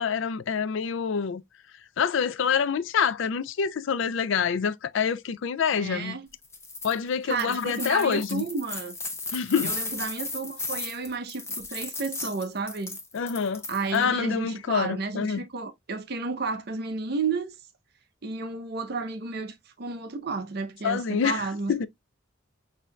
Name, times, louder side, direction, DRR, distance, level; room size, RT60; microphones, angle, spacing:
voice 1, 0.0-1.4 2.0-6.2 6.8-8.4 9.3-9.8 13.1-13.6 13.9-15.4 20.8-21.9, left 6 dB, 65° left, 0.4 m, -26 dB
voice 2, 5.7-6.3 7.2-8.9 9.6-13.0 13.7-17.6 18.2-21.7, right 4 dB, 50° right, 0.6 m, -32 dB
sound 1, 6.4-6.9 7.3-14.0, left 3 dB, 15° left, 0.6 m, -35 dB
6.3 x 2.7 x 2.2 m
head